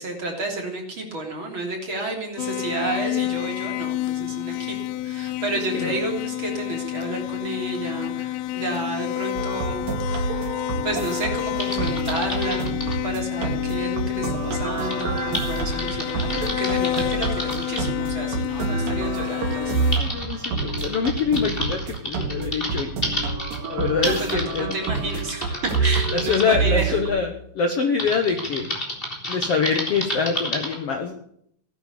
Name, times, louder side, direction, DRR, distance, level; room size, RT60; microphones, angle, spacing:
voice 1, 0.0-4.8 5.0-12.7 13.0-19.9 24.0-27.0, right 2 dB, 35° right, 1 dB, 3.8 m, -31 dB
sound 1, 2.4-20.0, left 14 dB, 85° left, 2.5 m, -29 dB
sound 2, 9.4-27.1, right 4 dB, 70° right, 4.0 m, -28 dB
Typing, 11.6-13.0 14.9-17.9 18.9-19.0 19.5-26.4 28.0-30.8, left 1 dB, 15° left, 3.5 m, -31 dB
voice 2, 20.0-22.9 23.7-24.8 25.1-25.2 25.8-28.7 29.3-31.2, left 5 dB, 60° left, 5 dB, 1.8 m, -25 dB
18.0 x 10.0 x 6.8 m, 0.68 s
omnidirectional pair, 4.2 m